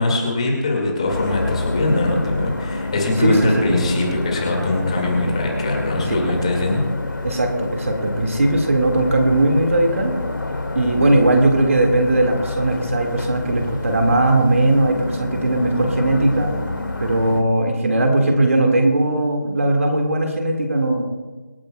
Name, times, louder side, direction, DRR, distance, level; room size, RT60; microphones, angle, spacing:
voice 1, 0.0-6.8, left 2 dB, 20° left, 0 dB, 2.0 m, -21 dB
sound 1, 1.1-17.4, left 2 dB, 90° left, 2.1 m, -28 dB
voice 2, 3.2-3.8 6.1-6.2 7.2-10.1 10.8-16.5 17.0-21.0, right 2 dB, 45° right, 3 dB, 1.8 m, -18 dB
25.5 x 10.0 x 2.2 m, 1.3 s
figure-of-eight pair, 175°, 10 cm